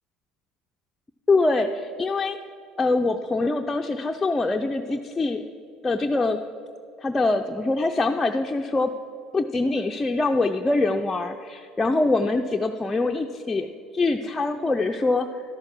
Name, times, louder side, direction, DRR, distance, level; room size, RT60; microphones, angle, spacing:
voice 1, 1.3-2.4 2.8-5.4 5.8-6.4 7.0-8.9 9.3-13.7 13.9-15.4, left 3 dB, 20° left, 3 dB, 0.5 m, -24 dB
12.0 x 6.5 x 6.1 m, 2.3 s
hypercardioid pair, 70°, 0 cm